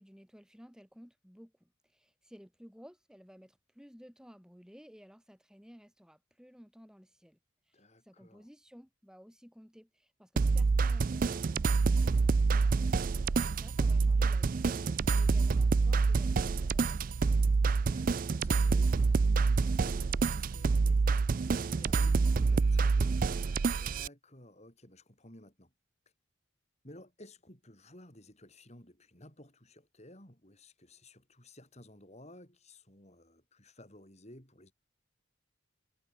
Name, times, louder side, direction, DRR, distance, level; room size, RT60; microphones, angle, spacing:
voice 1, 0.0-7.4 7.6-17.0, equal, 5° right, 4.3 m, -56 dB
voice 2, 7.7-8.5 17.3-25.7 26.8-34.7, left 1 dB, 35° left, 7.4 m, -55 dB
sound 1, 10.4-24.1, right 4 dB, 45° right, 0.4 m, -27 dB
head